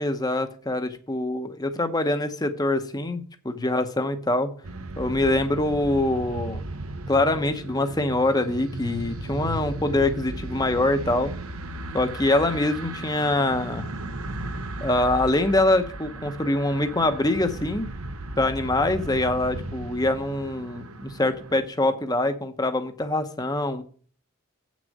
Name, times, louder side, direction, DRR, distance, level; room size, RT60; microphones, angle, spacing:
voice 1, 0.0-4.5 5.0-6.6 7.1-11.3 11.9-13.9 14.8-17.9 18.4-23.8, left 2 dB, 15° left, 0.9 m, -24 dB
sound 1, 4.6-21.6, right 2 dB, 75° right, 1.0 m, -36 dB
8.3 x 6.3 x 6.6 m
head